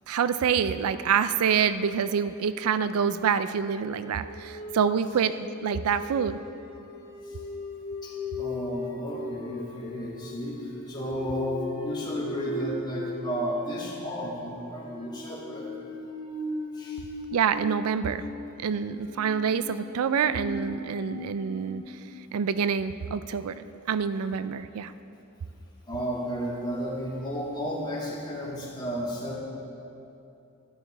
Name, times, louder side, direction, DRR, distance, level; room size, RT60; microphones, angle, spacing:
voice 1, 0.1-6.4 17.3-18.2 18.6-22.0 22.3-24.9, right 7 dB, 80° right, 13 dB, 0.4 m, -26 dB
sound 1, 3.8-21.8, left 1 dB, 45° left, 1.9 m, -39 dB
voice 2, 8.0-10.6 10.9-15.7 16.8-17.0 25.9-29.4, equal, 20° left, -5 dB, 2.0 m, -33 dB
13.5 x 11.0 x 3.3 m, 2.8 s
head